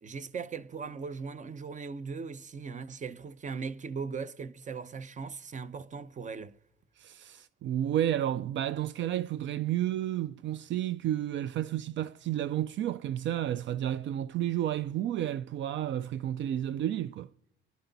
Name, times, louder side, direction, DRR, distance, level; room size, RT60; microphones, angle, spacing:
voice 1, 0.0-6.6, right 5 dB, 40° right, 0.8 m, -39 dB
voice 2, 7.0-17.3, right 12 dB, 70° right, 0.5 m, -31 dB
29.5 x 12.0 x 4.0 m
cardioid pair, 90°, 20 cm